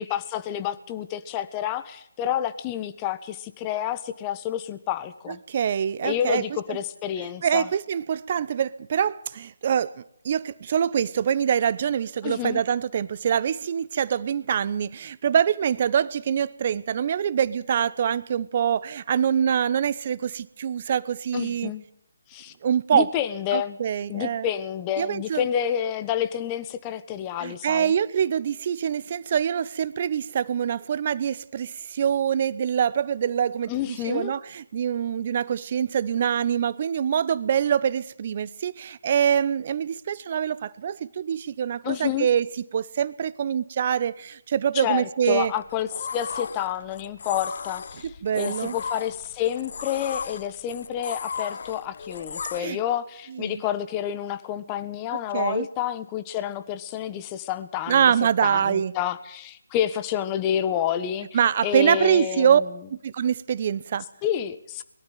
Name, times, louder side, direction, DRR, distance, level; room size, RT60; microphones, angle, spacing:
voice 1, 0.0-5.4 6.0-7.7 12.2-12.6 21.3-21.8 22.3-22.5 22.9-23.8 24.1-27.9 33.7-34.3 41.8-42.3 44.7-58.1 58.4-62.7 64.2-64.8, left 10 dB, 20° left, 11 dB, 1.4 m, -29 dB
voice 2, 5.5-6.4 6.7-6.8 7.4-21.7 22.6-23.1 23.5-24.5 25.0-25.5 27.4-42.5 42.7-45.5 48.0-48.7 52.6-52.8 53.3-53.6 55.3-55.7 57.9-58.9 61.3-62.6 62.9-64.0, right 8 dB, 40° right, 17 dB, 0.9 m, -24 dB
sound 1, 45.4-52.6, left 5 dB, 55° left, 0.8 m, -36 dB
22.5 x 13.0 x 9.2 m, 0.68 s
figure-of-eight pair, 150°, 0 cm